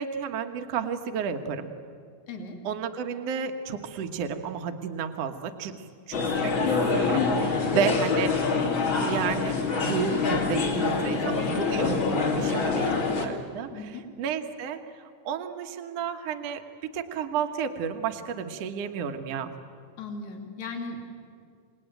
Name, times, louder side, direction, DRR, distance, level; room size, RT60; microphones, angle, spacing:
voice 1, 0.0-1.7 2.6-8.5 8.9-13.7 14.2-19.5, right 7 dB, 60° right, 6 dB, 2.1 m, -32 dB
voice 2, 2.3-2.6 7.6-7.8 12.3-12.7 13.7-14.1 20.0-21.0, left 3 dB, 60° left, 3 dB, 3.7 m, -37 dB
sound 1, 6.1-13.3, left 4 dB, 40° left, 2.7 m, -25 dB
27.5 x 19.5 x 9.2 m, 2.2 s
omnidirectional pair, 3.8 m